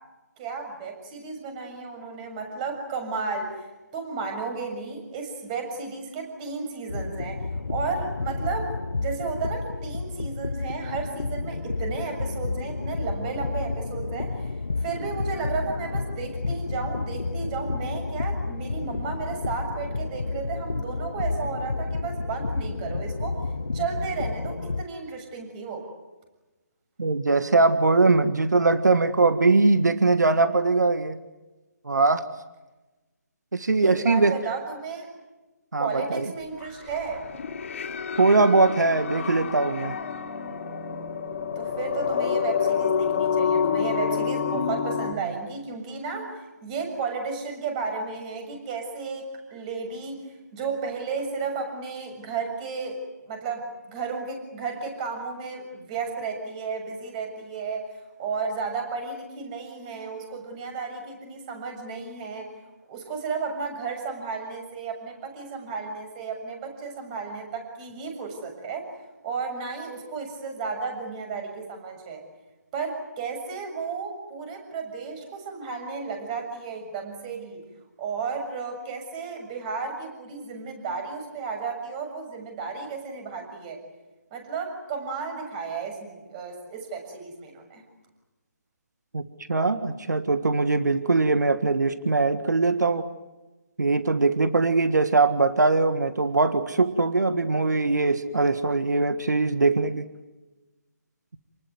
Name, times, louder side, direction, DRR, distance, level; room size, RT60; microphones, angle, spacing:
voice 1, 0.4-3.7 3.9-7.4 7.7-23.4 23.7-25.9 33.8-35.1 35.8-37.2 41.5-50.2 50.5-57.9 58.2-62.5 62.9-68.9 69.2-72.2 72.7-77.6 78.0-83.8 84.3-87.8, right 5 dB, 25° right, 5 dB, 6.9 m, -33 dB
sound 1, 6.9-24.8, left 3 dB, 80° left, 1.1 m, -31 dB
voice 2, 27.0-31.2 31.8-32.2 33.5-34.3 35.7-36.3 38.2-39.9 89.1-89.2 89.5-93.0 93.8-100.1, right 3 dB, 80° right, 11 dB, 1.7 m, -21 dB
sound 2, 36.6-45.1, left 7 dB, 50° left, 3.5 m, -28 dB
29.5 x 20.0 x 9.5 m, 1.1 s
figure-of-eight pair, 150°, 9 cm